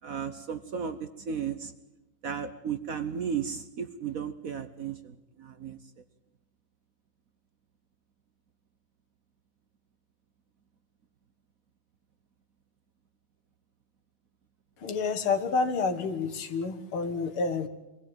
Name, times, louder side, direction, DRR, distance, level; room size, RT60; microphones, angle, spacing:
voice 1, 0.0-1.7 2.2-5.8, right 7 dB, 55° right, 10 dB, 1.0 m, -34 dB
voice 2, 14.8-17.7, left 4 dB, 90° left, 9 dB, 2.4 m, -29 dB
23.0 x 17.0 x 8.9 m, 1.0 s
omnidirectional pair, 2.3 m